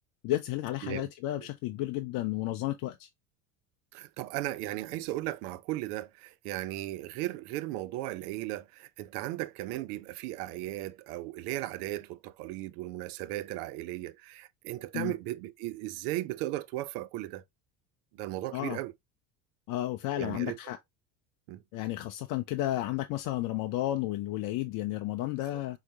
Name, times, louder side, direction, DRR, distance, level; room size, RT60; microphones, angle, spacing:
voice 1, 0.2-3.1 14.9-15.1 18.5-18.8 19.7-20.8 21.7-25.8, left 15 dB, 45° left, 0.5 m, -32 dB
voice 2, 3.9-17.4 18.2-18.9 20.2-20.6 21.5-21.6, right 16 dB, 70° right, 0.5 m, -36 dB
4.4 x 2.0 x 2.7 m
hypercardioid pair, 80°, 47 cm